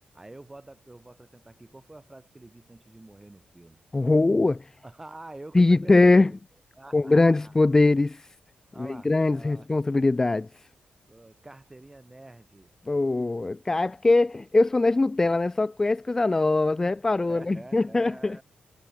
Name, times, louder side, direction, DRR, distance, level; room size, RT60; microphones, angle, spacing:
voice 1, 0.1-3.8 4.8-6.4 6.7-7.5 8.7-9.7 11.1-12.7 17.3-18.4, right 2 dB, 15° right, 5.3 m, -47 dB
voice 2, 3.9-4.7 5.5-6.3 6.9-8.3 8.8-10.5 12.9-18.4, left 2 dB, 15° left, 0.4 m, -22 dB
wide cardioid pair, 150°, 3 cm